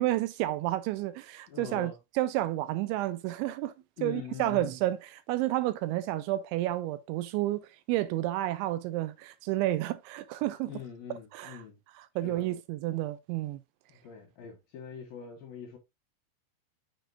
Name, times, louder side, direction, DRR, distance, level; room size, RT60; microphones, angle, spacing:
voice 1, 0.0-3.7 4.0-5.0 5.3-10.7 11.3-11.6 12.0-13.6, right 15 dB, 85° right, 2.8 m, -30 dB
voice 2, 1.5-2.0 4.0-4.7 10.6-11.8 12.2-12.5 13.9-15.8, left 8 dB, 65° left, 2.6 m, -43 dB
7.6 x 6.9 x 2.5 m
omnidirectional pair, 5.7 m